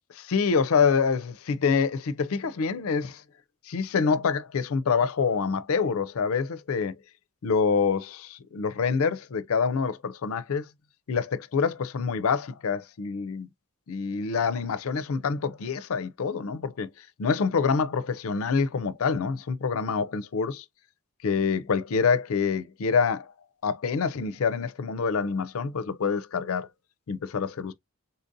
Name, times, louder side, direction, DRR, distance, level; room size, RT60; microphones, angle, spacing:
voice 1, 0.1-3.2 3.7-7.0 7.4-10.7 11.1-13.5 13.9-20.6 21.2-23.3 23.6-26.7 27.1-27.7, left 5 dB, 70° left, 0.4 m, -26 dB
4.0 x 2.6 x 2.6 m
head